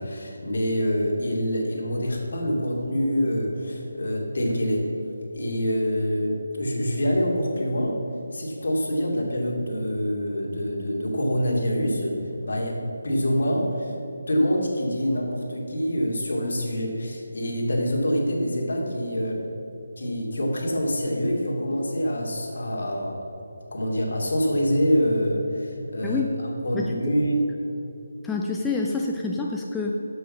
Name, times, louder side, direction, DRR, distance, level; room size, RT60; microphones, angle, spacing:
voice 1, 0.0-4.9 5.3-8.0 8.3-13.9 14.3-19.4 20.0-23.2 23.7-27.4, equal, 60° left, -1 dB, 2.5 m, -25 dB
voice 2, 26.0-26.3 26.7-27.0 28.2-29.9, left 3 dB, 5° left, -1 dB, 0.5 m, -27 dB
8.2 x 7.5 x 6.1 m, 2.9 s
figure-of-eight pair, 155°, 0 cm